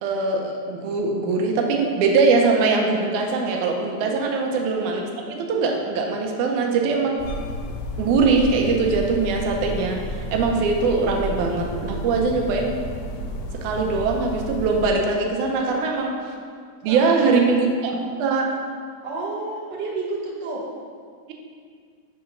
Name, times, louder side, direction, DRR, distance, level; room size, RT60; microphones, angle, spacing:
voice 1, 0.0-7.2 8.0-10.0 10.3-12.8 13.6-16.1 16.8-18.5, right 4 dB, 85° right, 2 dB, 2.2 m, -22 dB
voice 2, 4.0-4.4 15.5-15.8 16.9-17.4 19.0-20.6, right 2 dB, 70° right, -4 dB, 1.1 m, -31 dB
sound 1, 7.2-14.9, equal, 80° left, 2.0 m, -32 dB
6.9 x 3.8 x 5.7 m, 2.1 s
omnidirectional pair, 3.4 m